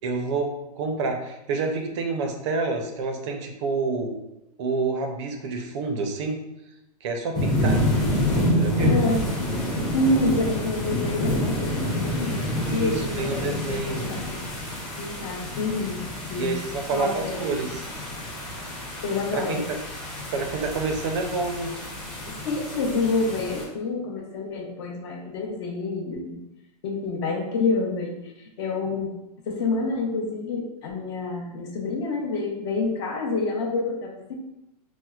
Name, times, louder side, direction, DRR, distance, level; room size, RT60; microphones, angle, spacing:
voice 1, 0.0-4.2 4.6-6.4 7.0-7.8 8.5-8.9 12.6-14.1 16.4-17.9 19.3-19.8 20.3-21.7, right 3 dB, 45° right, 4 dB, 0.5 m, -28 dB
sound 1, 7.3-23.6, left 1 dB, ahead, 0.5 m, -28 dB
voice 2, 8.8-9.2 9.9-14.4 15.0-16.0 16.3-16.6 16.9-17.6 19.0-19.6 22.3-26.4 26.8-29.1 29.5-34.3, left 3 dB, 45° left, 1 dB, 0.6 m, -28 dB
4.4 x 2.0 x 2.3 m, 0.88 s
hypercardioid pair, 145°, 20 cm